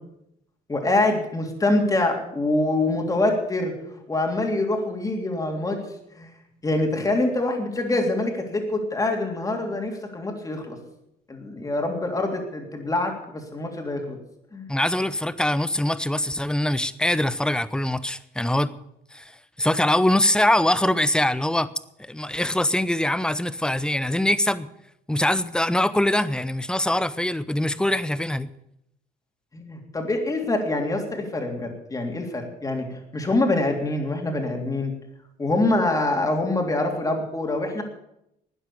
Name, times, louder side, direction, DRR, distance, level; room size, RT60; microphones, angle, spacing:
voice 1, 0.7-5.8 6.1-6.3 6.6-10.8 11.3-14.2 14.5-14.7 29.5-34.9 35.4-37.8, left 2 dB, 20° left, 3.2 m, -25 dB
voice 2, 14.7-18.7 19.1-19.3 19.6-21.7 22.1-24.7 25.1-28.5, left 1 dB, 5° left, 0.7 m, -23 dB
12.5 x 9.6 x 8.6 m
cardioid pair, 110°, 17 cm